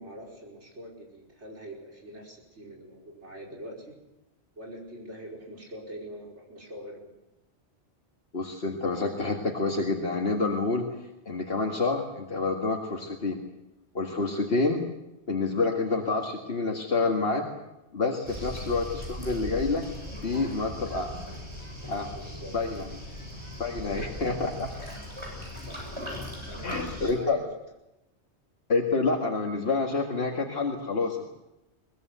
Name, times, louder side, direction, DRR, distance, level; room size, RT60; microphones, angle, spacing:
voice 1, 0.0-4.0 4.6-7.1 18.3-18.5 22.1-22.5 23.8-24.0 25.6-25.9 26.5-27.4, equal, 85° right, 0 dB, 5.6 m, -44 dB
voice 2, 8.3-10.9 11.3-13.4 13.9-14.8 15.3-17.5 17.9-19.9 20.2-21.2 21.9-22.1 22.5-22.9 23.6-24.7 26.6-27.4 28.7-31.3, left 3 dB, 60° left, 1 dB, 2.3 m, -28 dB
Waves surf, 18.3-27.1, left 1 dB, 25° right, 7.7 m, -39 dB
23.0 x 20.0 x 8.1 m, 0.92 s
omnidirectional pair, 1.1 m